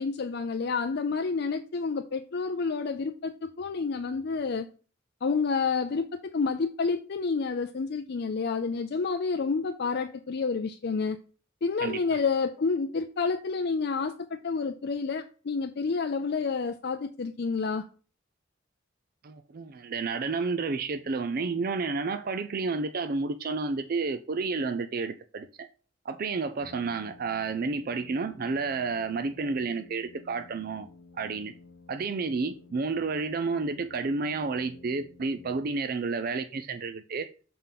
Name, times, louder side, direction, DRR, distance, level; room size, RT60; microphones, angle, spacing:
voice 1, 0.0-4.7 5.2-11.2 11.6-17.8, left 4 dB, 55° left, 0.5 m, -29 dB
voice 2, 19.2-25.7 26.0-30.9 31.1-31.5 31.9-37.3, right 4 dB, 45° right, 0.4 m, -31 dB
Brass instrument, 26.6-36.1, left 3 dB, 75° left, 1.0 m, -53 dB
7.0 x 3.7 x 5.7 m
head